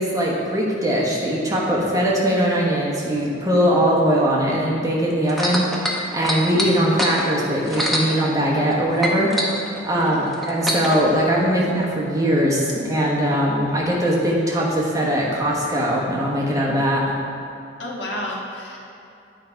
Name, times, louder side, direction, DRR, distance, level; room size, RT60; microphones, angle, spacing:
voice 1, 0.0-5.7 6.1-9.4 9.8-17.0, equal, 20° right, -4 dB, 1.1 m, -21 dB
sound 1, 5.3-8.7 9.0-11.0 11.8-11.9, equal, ahead, 0.7 m, -25 dB
voice 2, 10.0-10.3 17.8-18.8, left 1 dB, 70° left, -3 dB, 1.4 m, -30 dB
9.5 x 4.9 x 4.5 m, 2.7 s
head